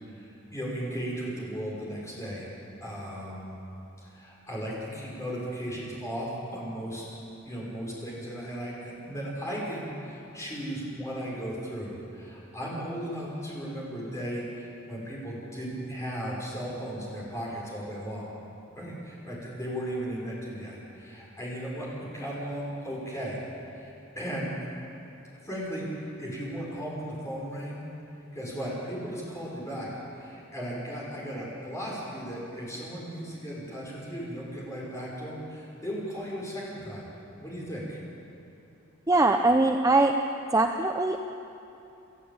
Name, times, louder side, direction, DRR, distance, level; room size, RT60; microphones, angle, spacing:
voice 1, 0.1-2.6 2.8-3.6 4.0-7.2 7.4-18.3 18.7-23.4 23.7-24.5 25.4-27.8 28.3-37.0 37.4-38.0, equal, 15° left, -5 dB, 5.9 m, -36 dB
voice 2, 39.1-40.1 40.5-41.2, right 2 dB, 15° right, 4 dB, 0.6 m, -22 dB
29.5 x 12.5 x 8.8 m, 2.8 s
head